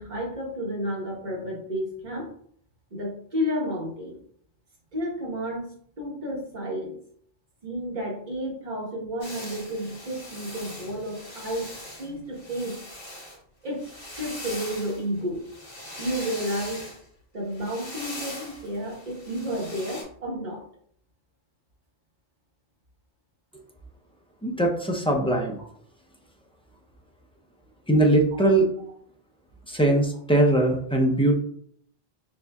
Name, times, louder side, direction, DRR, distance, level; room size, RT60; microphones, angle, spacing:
voice 1, 0.0-2.3 2.9-4.2 4.9-5.6 6.0-7.0 7.6-11.7 12.0-12.8 13.6-15.5 16.0-16.9 17.3-20.6, equal, 45° right, -3 dB, 1.4 m, -31 dB
sound 1, 9.2-13.4 13.7-17.0 17.5-20.0, left 1 dB, 40° left, 1.7 m, -41 dB
voice 2, 24.4-25.6 27.9-28.7 29.7-31.4, right 1 dB, 10° left, 1 dB, 0.4 m, -21 dB
6.4 x 2.6 x 2.3 m, 0.63 s
omnidirectional pair, 1.1 m